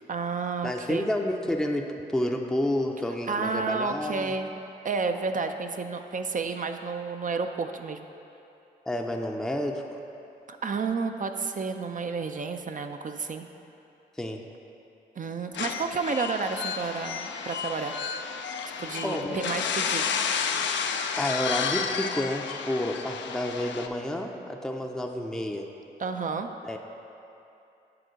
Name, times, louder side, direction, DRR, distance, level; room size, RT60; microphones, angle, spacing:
voice 1, 0.1-1.1 3.3-4.5 4.8-8.1 10.6-13.4 15.2-17.9 18.8-20.1 26.0-26.5, right 4 dB, 40° right, 6 dB, 0.5 m, -31 dB
voice 2, 0.6-4.3 8.9-10.0 14.2-14.4 19.0-19.4 21.2-25.7 26.6-26.8, left 1 dB, ahead, 2 dB, 0.6 m, -30 dB
sound 1, 15.5-23.9, left 6 dB, 65° left, 0.4 m, -31 dB
7.7 x 3.7 x 5.0 m, 2.8 s
supercardioid pair, 40°, 20 cm